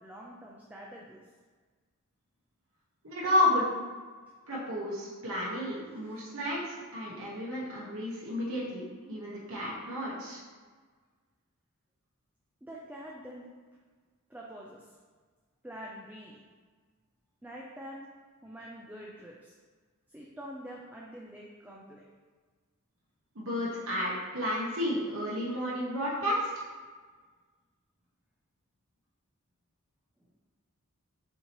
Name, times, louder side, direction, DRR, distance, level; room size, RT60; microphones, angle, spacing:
voice 1, 0.0-1.2 6.0-6.2 12.6-13.4 14.3-14.9 15.6-16.4 17.4-18.0 18.4-19.5 20.1-22.0, equal, 5° right, -4 dB, 0.4 m, -45 dB
voice 2, 3.0-3.7 4.5-10.4 23.3-26.6, left 1 dB, 65° right, -6 dB, 1.1 m, -31 dB
6.4 x 2.8 x 3.0 m, 1.5 s
head